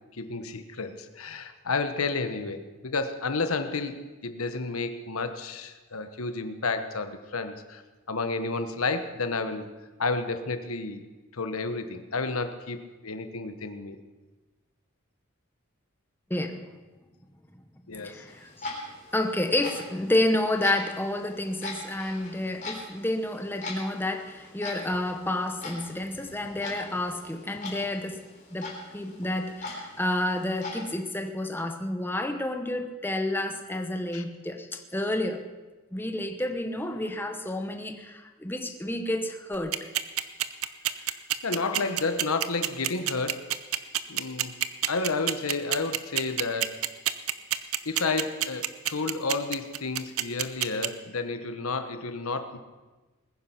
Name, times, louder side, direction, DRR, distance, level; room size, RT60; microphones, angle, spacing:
voice 1, 0.1-7.8 8.1-9.7 10.0-11.0 11.3-12.8 13.0-14.0 17.9-18.2 34.1-34.2 41.4-43.5 44.1-44.5 44.8-46.8 47.8-52.6, left 3 dB, 85° left, 9 dB, 1.1 m, -31 dB
voice 2, 16.3-16.8 17.9-18.7 19.1-28.2 28.5-35.4 35.9-39.8, left 1 dB, 10° left, 5 dB, 0.9 m, -30 dB
Clock, 18.3-30.8, left 2 dB, 35° left, 3.7 m, -42 dB
sound 1, 39.5-50.9, right 13 dB, 85° right, 0.8 m, -26 dB
20.5 x 9.9 x 5.8 m, 1.2 s
head